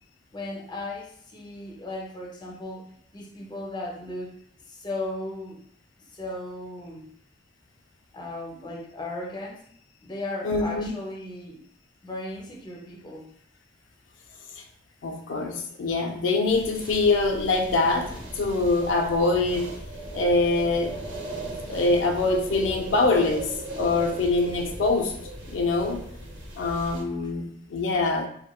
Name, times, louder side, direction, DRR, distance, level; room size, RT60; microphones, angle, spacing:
voice 1, 0.3-5.6 6.1-7.1 8.1-9.7 10.0-11.6 12.0-13.3, left 2 dB, 25° left, 0 dB, 0.5 m, -36 dB
voice 2, 10.4-10.9 14.6-14.7 15.0-19.8 20.1-21.0 21.7-25.1 25.5-26.0 26.6-28.3, left 3 dB, 85° left, 3 dB, 0.4 m, -24 dB
sound 1, 16.5-27.0, right 1 dB, 80° right, 0.7 m, -37 dB
3.0 x 2.1 x 2.2 m, 0.66 s
head